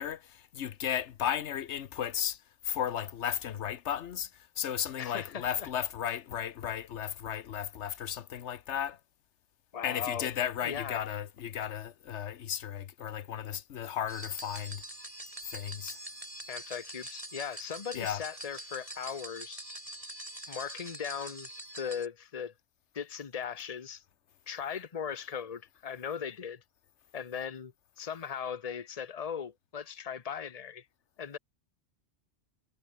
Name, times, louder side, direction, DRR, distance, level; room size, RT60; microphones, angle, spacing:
voice 1, 0.0-9.0 9.8-14.8 15.4-16.0 17.9-18.2, left 9 dB, 85° left, 1.1 m, -35 dB
voice 2, 5.0-5.7 9.7-10.3 10.6-11.0 16.5-19.6 20.5-21.5 21.8-22.5 22.9-24.0 24.5-26.6 27.1-30.8 31.2-31.4, left 7 dB, 35° left, 1.0 m, -38 dB
sound 1, 14.1-22.1, right 1 dB, 30° right, 5.8 m, -44 dB
omnidirectional pair, 1.1 m